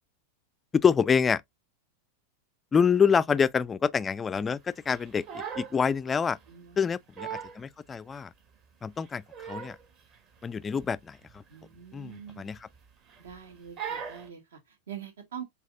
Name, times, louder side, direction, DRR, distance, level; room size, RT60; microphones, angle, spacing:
voice 1, 0.7-1.4 2.7-6.4 6.8-8.3 8.8-9.8 10.4-11.4 11.9-12.6, left 6 dB, 20° left, 0.3 m, -26 dB
Crying sobbing, 4.9-5.8 6.1-6.4 6.8-6.9 7.2-7.6 8.1-8.2 9.0-9.9 10.1-10.4 10.7-10.9 11.2-11.4 12.2-12.8 13.1-13.4 13.8-14.3, right 7 dB, 35° right, 1.3 m, -39 dB
voice 2, 6.5-7.0 7.4-7.5 11.5-12.5 13.2-15.4, right 9 dB, 65° right, 1.6 m, -44 dB
7.5 x 2.8 x 2.4 m
figure-of-eight pair, 90°, 0 cm